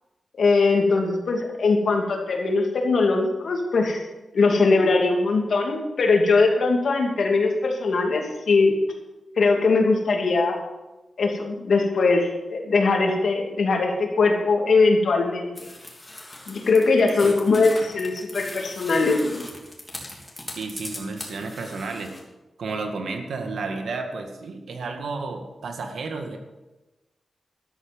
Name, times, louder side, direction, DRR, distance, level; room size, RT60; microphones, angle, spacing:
voice 1, 0.4-4.1 4.3-8.8 9.4-10.6 11.2-15.5 16.5-19.4, left 3 dB, 70° left, 1 dB, 2.7 m, -21 dB
sound 1, 15.6-22.2, left 1 dB, 15° left, 3.2 m, -39 dB
voice 2, 20.6-22.1 22.6-26.4, right 3 dB, 85° right, 4 dB, 1.9 m, -32 dB
13.0 x 12.5 x 5.4 m, 1.1 s
wide cardioid pair, 110°, 0 cm